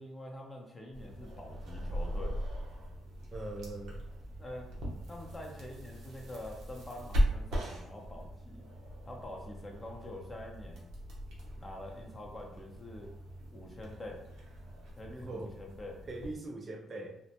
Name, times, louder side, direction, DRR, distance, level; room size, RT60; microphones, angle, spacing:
voice 1, 0.0-2.3 4.4-4.7 5.1-8.6 9.0-10.9 11.5-13.1 13.5-14.2 15.0-15.9, left 1 dB, 20° left, -1 dB, 0.7 m, -46 dB
sound 1, 0.9-16.4, equal, 85° right, 0.7 m, -39 dB
voice 2, 3.3-4.0 15.2-15.5 16.1-17.2, right 2 dB, 35° right, 3 dB, 0.4 m, -41 dB
2.1 x 2.1 x 2.8 m, 0.81 s
cardioid pair, 90°, 0 cm